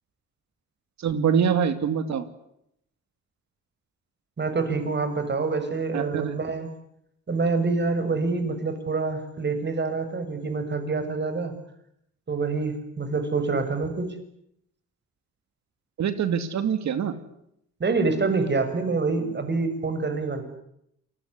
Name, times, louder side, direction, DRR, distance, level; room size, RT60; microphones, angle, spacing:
voice 1, 1.0-2.2 5.9-6.4 13.5-13.6 16.0-17.1, right 7 dB, 65° right, 11 dB, 2.8 m, -24 dB
voice 2, 4.4-6.7 7.3-11.5 12.3-14.2 17.8-20.4, right 4 dB, 35° right, 9 dB, 7.0 m, -26 dB
28.0 x 20.5 x 10.0 m, 0.77 s
cardioid pair, 90°, 30 cm